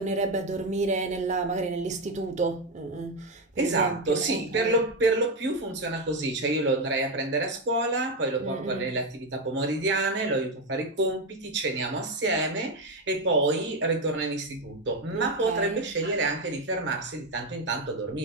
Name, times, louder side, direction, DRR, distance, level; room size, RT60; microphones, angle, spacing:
voice 1, 0.0-4.8 8.4-8.9 15.1-15.8, right 3 dB, 40° right, 0.5 m, -30 dB
voice 2, 3.6-18.2, right 2 dB, 65° right, 0.8 m, -28 dB
3.0 x 2.0 x 4.1 m
head